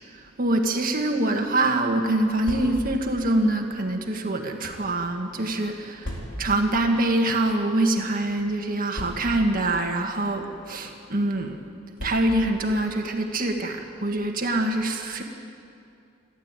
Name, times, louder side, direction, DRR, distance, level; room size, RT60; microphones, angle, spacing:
voice 1, 0.1-11.6 12.0-15.2, right 1 dB, 45° right, 3 dB, 1.9 m, -25 dB
sound 1, 2.4-3.1 3.9-4.9 6.0-6.6 7.5-7.7 7.9-8.0 8.9-9.6 10.5-10.7 11.9-12.6, equal, 60° left, 4.2 m, -36 dB
27.5 x 12.0 x 9.1 m, 2.5 s
head